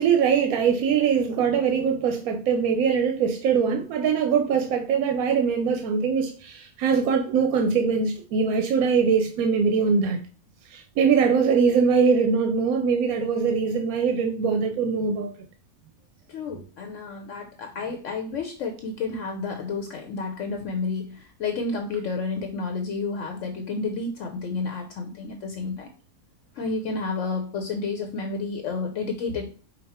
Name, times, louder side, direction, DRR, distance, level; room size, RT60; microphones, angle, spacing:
voice 1, 0.0-10.2 10.7-15.3, right 6 dB, 90° right, 1.1 m, -22 dB
voice 2, 16.3-25.9 26.5-29.5, left 4 dB, 65° left, 0.9 m, -30 dB
5.2 x 2.4 x 4.2 m
omnidirectional pair, 1.5 m